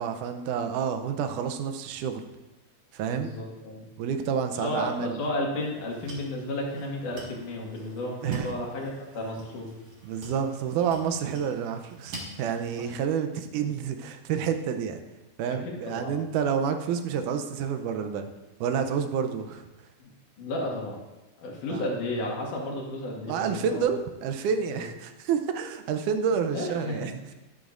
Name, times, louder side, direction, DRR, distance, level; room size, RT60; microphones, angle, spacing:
voice 1, 0.0-2.2 2.9-3.3 4.0-5.2 8.2-8.7 10.0-15.0 15.4-18.3 18.6-19.7 21.7-21.9 23.3-27.1, right 7 dB, 80° right, 7 dB, 2.2 m, -29 dB
voice 2, 3.1-3.9 4.6-9.7 12.8-12.9 15.6-16.1 20.0-20.1 20.4-21.0 21.4-23.9 24.7-24.8 26.5-27.1, left 1 dB, 80° left, -2 dB, 3.3 m, -33 dB
sound 1, 5.5-12.9, right 1 dB, 35° right, 1.7 m, -47 dB
11.5 x 11.0 x 2.5 m, 1.0 s
omnidirectional pair, 3.6 m